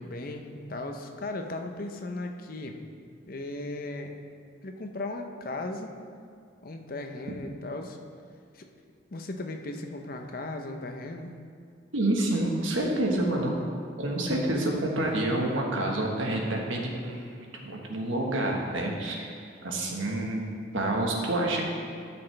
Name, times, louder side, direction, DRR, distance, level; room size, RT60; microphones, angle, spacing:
voice 1, 0.0-2.8 3.3-4.1 4.6-5.9 6.6-8.0 8.5-8.7 9.1-11.3, left 2 dB, 50° left, 4 dB, 0.7 m, -36 dB
voice 2, 11.9-13.5 14.0-19.3 19.6-21.6, right 1 dB, 85° right, 0 dB, 1.3 m, -28 dB
12.5 x 6.0 x 3.3 m, 2.3 s
head